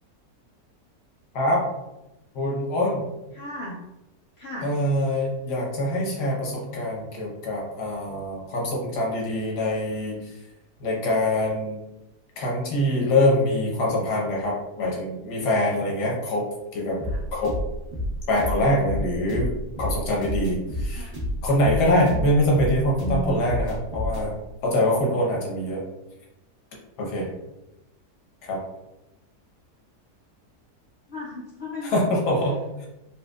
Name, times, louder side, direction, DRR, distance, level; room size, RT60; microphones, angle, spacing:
voice 1, 1.3-1.6 2.3-3.1 4.6-10.3 10.8-11.8 12.4-16.4 16.7-17.0 17.3-17.5 18.3-19.5 19.8-21.1 21.4-24.4 24.6-25.8 27.0-27.3 28.4-28.6 31.8-32.9, left 1 dB, 90° left, -2 dB, 1.5 m, -24 dB
voice 2, 3.3-3.8 4.4-4.7 21.0-21.1 22.0-22.3 23.0-23.3 31.1-31.9, right 1 dB, 65° left, -4 dB, 0.6 m, -33 dB
sound 1, 17.0-24.3, equal, 35° right, 1.3 m, -29 dB
4.2 x 2.7 x 2.3 m, 0.95 s
omnidirectional pair, 1.7 m